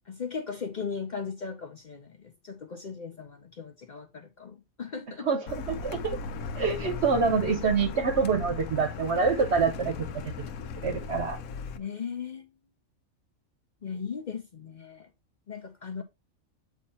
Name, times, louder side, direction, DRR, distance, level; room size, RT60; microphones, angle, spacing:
voice 1, 0.1-5.3 11.7-12.5 13.8-15.1 15.5-16.0, left 6 dB, 55° left, 0.5 m, -37 dB
voice 2, 5.2-6.2 6.6-10.3 10.8-11.4, right 5 dB, 55° right, 1.0 m, -26 dB
Car, 5.5-11.8, left 5 dB, 85° left, 1.1 m, -37 dB
8.2 x 2.9 x 4.2 m
omnidirectional pair, 1.5 m